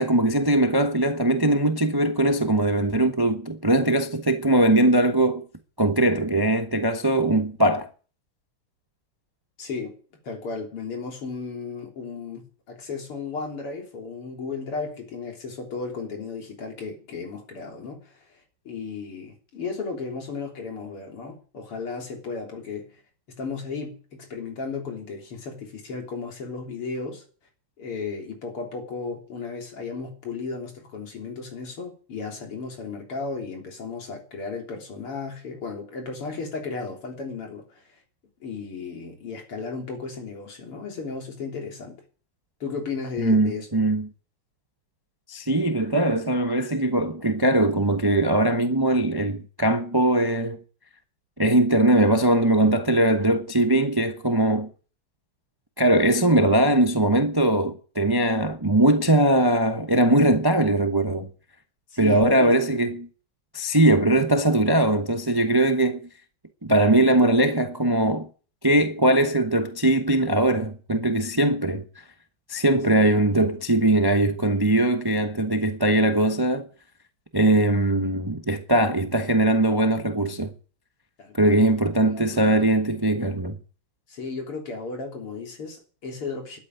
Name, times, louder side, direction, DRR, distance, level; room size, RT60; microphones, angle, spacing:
voice 1, 0.0-5.4 5.8-7.9 43.2-44.1 45.3-50.6 51.4-54.7 55.8-61.3 62.0-63.1 63.5-66.1 66.6-68.3 68.6-72.0 72.5-76.7 77.3-80.5 81.3-83.6, right 1 dB, 25° right, 0.4 m, -21 dB
voice 2, 9.6-9.9 10.2-18.1 18.7-23.0 23.3-27.2 27.8-37.8 38.4-42.0 42.6-43.7 61.9-62.8 73.0-73.1 81.2-81.8 82.1-82.6 84.1-86.6, left 4 dB, 90° left, 4.4 m, -34 dB
12.5 x 8.6 x 9.6 m
omnidirectional pair, 2.4 m